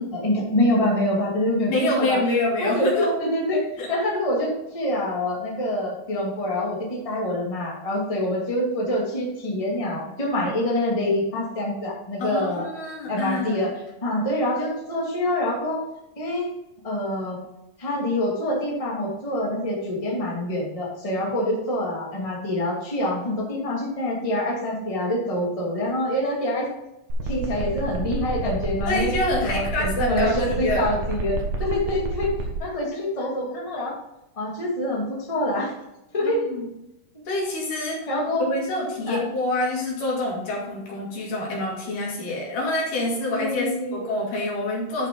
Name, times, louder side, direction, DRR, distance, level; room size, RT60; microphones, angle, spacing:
voice 1, 0.1-2.2 2.6-12.7 13.1-15.8 16.2-16.5 16.8-17.4 17.8-26.7 27.2-29.1 29.4-32.3 32.6-33.9 34.4-35.7 36.1-36.5 38.1-38.4 39.1-39.2 43.3-44.1, left 1 dB, 10° left, -4 dB, 2.1 m, -26 dB
voice 2, 1.7-3.1 3.8-3.9 12.2-13.6 28.9-30.9 36.2-36.7 37.3-38.0 38.4-45.1, left 2 dB, 70° left, -3 dB, 4.0 m, -26 dB
sound 1, 27.1-32.5, right 2 dB, 60° right, 2.6 m, -29 dB
11.5 x 5.8 x 3.9 m, 0.88 s
omnidirectional pair, 3.9 m